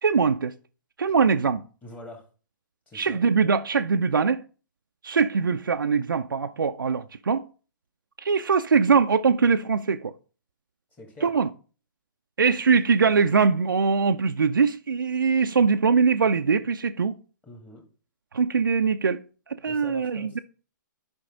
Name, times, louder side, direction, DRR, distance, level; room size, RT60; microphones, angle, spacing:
voice 1, 0.0-0.5 1.0-1.6 2.9-4.4 5.0-7.5 8.2-10.1 11.2-11.5 12.4-17.2 18.3-19.2 19.5-20.4, right 5 dB, 90° right, 0.5 m, -22 dB
voice 2, 1.8-2.3 2.9-3.2 10.9-11.3 17.4-17.8 19.7-20.4, left 2 dB, 15° left, 2.2 m, -44 dB
10.5 x 5.2 x 3.9 m
hypercardioid pair, 130°, 11 cm